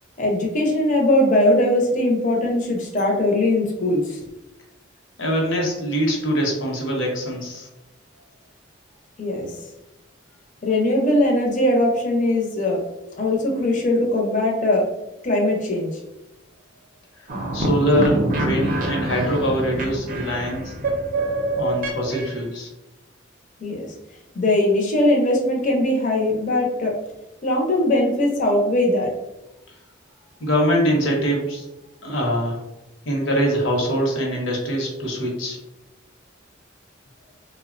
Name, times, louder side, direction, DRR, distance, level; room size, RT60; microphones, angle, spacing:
voice 1, 0.2-4.2 9.2-9.6 10.6-12.8 13.2-14.9 15.2-16.0 23.6-23.9 24.3-27.0 27.4-29.1, left 1 dB, 40° left, 0 dB, 0.5 m, -20 dB
voice 2, 5.2-7.7 17.2-20.7 21.5-22.7 30.4-31.7 32.0-32.6 33.0-35.6, equal, 80° left, 0 dB, 0.8 m, -23 dB
sound 1, 17.3-22.4, right 1 dB, 45° right, 0.5 m, -25 dB
3.4 x 2.0 x 2.4 m, 0.93 s
head